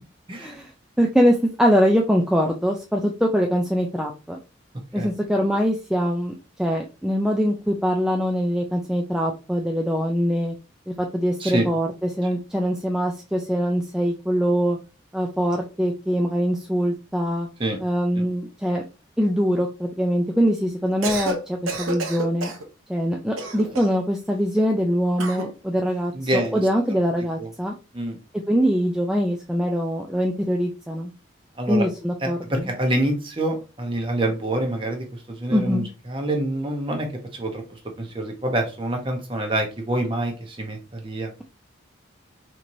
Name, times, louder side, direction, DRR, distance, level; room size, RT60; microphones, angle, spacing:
voice 1, 0.4-0.7 1.0-4.4 4.9-10.5 11.0-14.8 15.1-17.5 17.8-18.8 19.2-22.5 22.9-27.7 28.5-31.1 31.7-32.7 35.5-35.9, equal, 5° right, 0 dB, 0.3 m, -23 dB
Cough, 20.9-21.4 21.7-22.6 23.4-24.0 25.2-25.5, right 2 dB, 90° right, 0.8 m, -29 dB
voice 2, 26.1-26.6 27.4-27.5 27.9-28.2 31.6-31.9 32.2-41.3, right 1 dB, 25° right, 3 dB, 0.8 m, -26 dB
4.3 x 3.0 x 2.6 m, 0.32 s
head